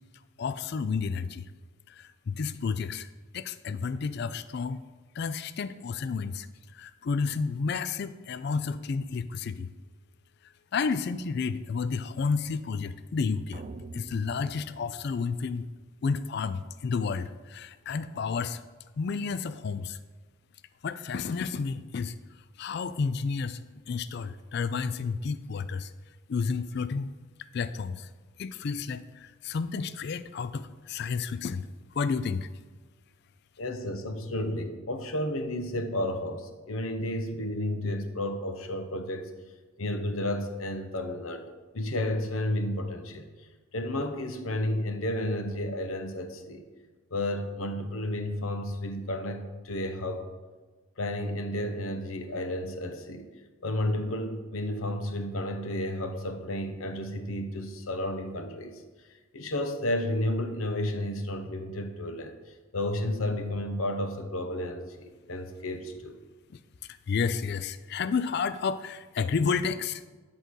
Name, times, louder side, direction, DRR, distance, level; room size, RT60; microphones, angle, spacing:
voice 1, 0.4-1.5 1.9-3.1 3.3-4.8 5.1-6.5 6.7-9.7 10.7-13.6 13.9-15.6 16.0-18.6 19.0-20.0 20.8-22.1 22.6-23.6 23.9-25.9 26.3-27.1 27.5-28.1 28.4-31.7 31.9-32.5 67.1-70.0, left 5 dB, 50° left, 14 dB, 0.3 m, -31 dB
sound 1, 13.5-15.8, right 3 dB, 35° right, 0.4 m, -46 dB
voice 2, 33.6-39.3 39.8-46.6 47.1-50.3 51.0-53.3 53.6-58.8 59.3-66.2, left 1 dB, 75° left, 7 dB, 0.9 m, -32 dB
10.5 x 3.9 x 6.2 m, 1.3 s
head